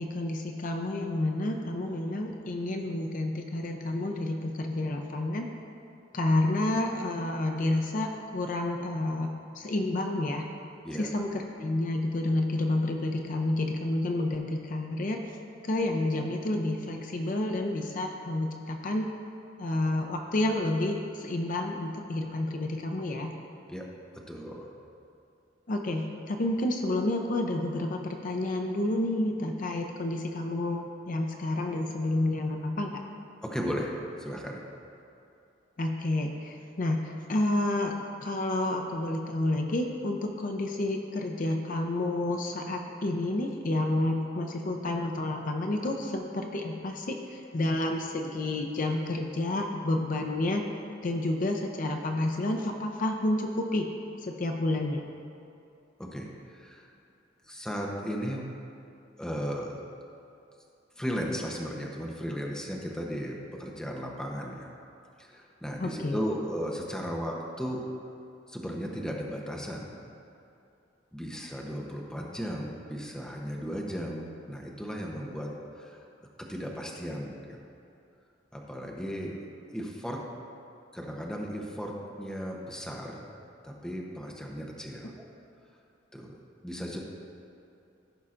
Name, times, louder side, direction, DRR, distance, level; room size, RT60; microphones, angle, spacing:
voice 1, 0.0-5.5 6.1-9.3 9.5-10.5 11.0-15.2 15.6-19.1 19.6-23.3 25.7-33.0 35.8-37.9 38.2-50.6 51.0-53.9 54.2-55.0 65.8-66.2, left 1 dB, 45° left, 3 dB, 0.5 m, -30 dB
voice 2, 24.3-24.6 33.4-34.6 56.0-56.9 57.5-58.5 59.2-59.8 61.0-64.7 65.2-67.9 68.5-70.0 71.1-75.5 75.7-76.0 76.5-77.6 78.5-79.4 79.7-80.2 80.9-83.3 83.6-85.3 86.1-86.3 86.6-87.0, equal, 5° left, -1 dB, 0.8 m, -35 dB
15.0 x 5.5 x 2.5 m, 2.7 s
head